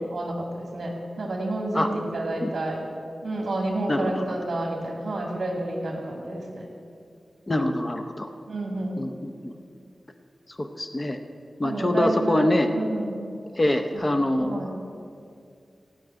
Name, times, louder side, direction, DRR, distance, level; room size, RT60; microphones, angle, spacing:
voice 1, 0.1-2.8 3.2-6.7 8.5-9.0 11.6-13.2 14.0-14.1 14.4-14.7, right 2 dB, 65° right, 0 dB, 2.2 m, -29 dB
voice 2, 3.9-4.2 7.5-8.3 9.0-9.5 10.6-11.2 11.6-12.7 13.6-14.7, left 1 dB, 25° left, 7 dB, 0.7 m, -25 dB
15.5 x 6.3 x 9.0 m, 2.4 s
wide cardioid pair, 110°, 0 cm